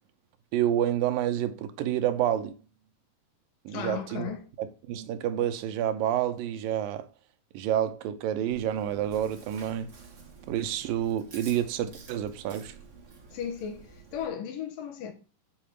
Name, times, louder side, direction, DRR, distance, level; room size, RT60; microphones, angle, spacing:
voice 1, 0.5-2.6 3.7-4.3 4.6-7.1 7.5-9.9 10.5-12.7, right 11 dB, 85° right, 2.6 m, -29 dB
voice 2, 3.7-4.5 13.3-15.1, left 8 dB, 80° left, 3.1 m, -36 dB
Chewing mastication, 8.5-14.3, right 4 dB, 45° right, 0.9 m, -50 dB
6.7 x 6.4 x 5.9 m
omnidirectional pair, 3.9 m